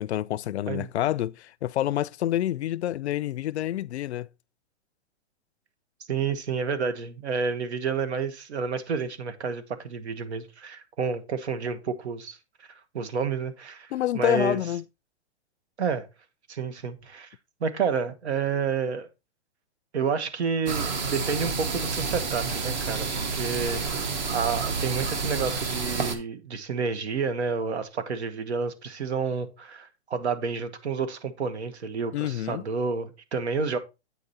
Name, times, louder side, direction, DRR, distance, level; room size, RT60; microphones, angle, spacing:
voice 1, 0.0-4.3 13.9-14.8 32.1-32.6, left 13 dB, 80° left, 0.5 m, -28 dB
voice 2, 6.1-12.4 12.9-14.6 15.8-16.1 16.5-17.3 17.6-19.1 19.9-24.0 24.3-33.8, right 5 dB, 80° right, 1.5 m, -30 dB
sound 1, 20.7-26.2, right 4 dB, 45° right, 1.3 m, -29 dB
8.5 x 4.9 x 4.1 m
hypercardioid pair, 170°, 33 cm